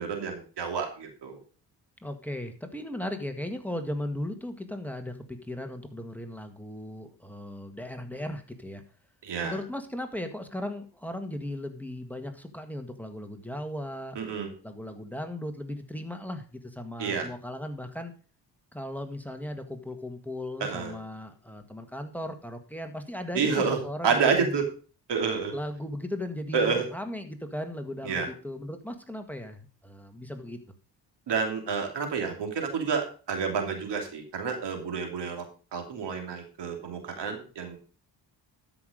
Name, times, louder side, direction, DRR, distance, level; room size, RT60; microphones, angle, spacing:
voice 1, 0.0-1.4 9.2-9.6 14.1-14.5 17.0-17.3 20.6-21.0 23.3-23.8 24.0-24.6 25.1-25.5 26.5-26.8 28.0-28.3 31.3-35.4 35.7-37.8, right 5 dB, 75° right, 4 dB, 3.0 m, -29 dB
voice 2, 2.0-8.8 9.4-14.2 14.6-18.1 18.7-24.6 25.5-30.6, left 1 dB, 5° left, 6 dB, 1.7 m, -37 dB
13.0 x 5.9 x 5.1 m, 0.38 s
cardioid pair, 75°, 42 cm